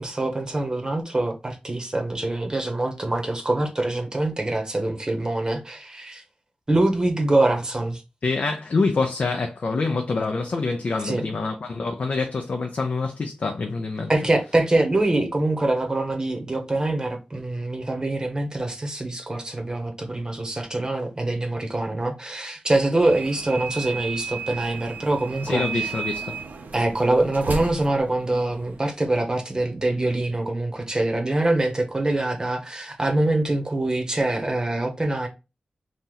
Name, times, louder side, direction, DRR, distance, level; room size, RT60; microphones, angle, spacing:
voice 1, 0.0-6.2 6.7-8.0 11.0-11.2 14.1-25.9 26.7-35.3, right 2 dB, 25° right, 0.9 m, -24 dB
voice 2, 8.2-14.1 25.4-26.3, left 3 dB, 60° left, 0.5 m, -26 dB
sound 1, 23.0-28.9, right 5 dB, 85° right, 0.6 m, -34 dB
3.0 x 2.8 x 3.8 m
wide cardioid pair, 80°, 3 cm